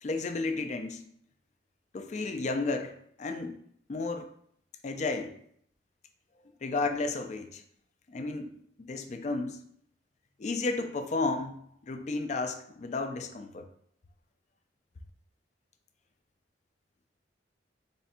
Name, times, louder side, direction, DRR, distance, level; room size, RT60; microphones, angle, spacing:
voice 1, 0.0-1.0 1.9-3.6 3.9-4.3 4.8-5.4 6.6-7.6 8.1-9.6 10.4-13.7, left 3 dB, 40° left, 7 dB, 0.4 m, -33 dB
3.3 x 2.5 x 4.2 m, 0.66 s
head